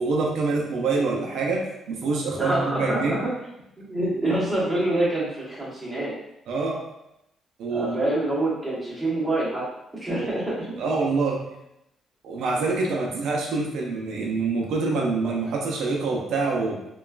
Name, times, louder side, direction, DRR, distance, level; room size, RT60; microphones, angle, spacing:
voice 1, 0.0-3.1 6.5-6.8 7.6-8.1 10.2-10.3 10.8-11.4 12.2-16.8, right 3 dB, 80° right, 0 dB, 0.4 m, -26 dB
voice 2, 2.3-3.3 3.8-6.1 7.7-9.6 10.0-10.7, right 1 dB, 15° right, -7 dB, 1.2 m, -26 dB
2.9 x 2.3 x 2.3 m, 0.85 s
cardioid pair, 90°, 0 cm